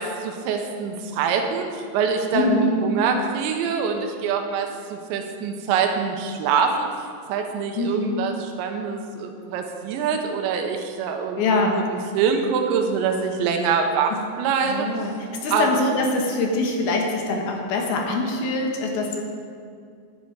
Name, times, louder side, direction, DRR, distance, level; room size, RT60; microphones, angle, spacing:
voice 1, 0.0-6.9 7.3-14.9 15.5-15.7, right 6 dB, 85° right, 3 dB, 3.2 m, -25 dB
voice 2, 2.3-2.8 7.8-8.2 11.4-11.8 14.7-15.1 15.4-19.2, left 3 dB, 70° left, 1 dB, 2.8 m, -23 dB
11.0 x 9.6 x 4.7 m, 2.3 s
omnidirectional pair, 5.1 m